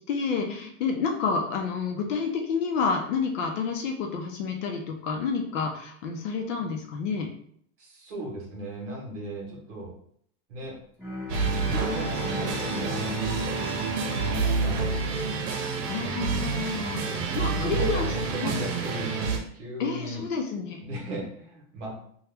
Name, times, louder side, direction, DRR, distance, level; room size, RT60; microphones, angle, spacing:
voice 1, 0.1-7.3 15.9-18.1 18.4-18.5 19.8-20.8, left 5 dB, 55° left, 2 dB, 0.6 m, -29 dB
voice 2, 7.8-9.9 10.5-10.8 11.6-13.6 14.2-15.2 17.1-20.2 20.8-22.0, equal, 50° right, -2 dB, 1.1 m, -37 dB
Bowed string instrument, 11.0-16.3, equal, 5° left, 0.7 m, -37 dB
sound 1, 11.3-19.4, right 4 dB, 75° right, 0.8 m, -28 dB
2.9 x 2.3 x 3.3 m, 0.65 s
supercardioid pair, 180°, 47 cm